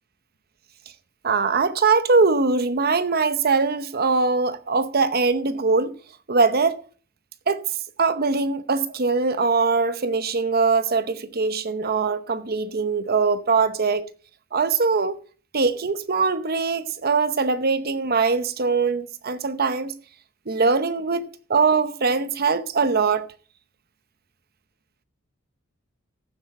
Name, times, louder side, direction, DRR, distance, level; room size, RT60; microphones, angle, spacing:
voice 1, 1.2-6.0 6.3-6.8 7.5-7.7 8.0-14.1 14.5-15.2 15.5-19.9 20.5-23.3, right 4 dB, 45° right, 0.9 m, -22 dB
15.0 x 7.9 x 4.3 m
head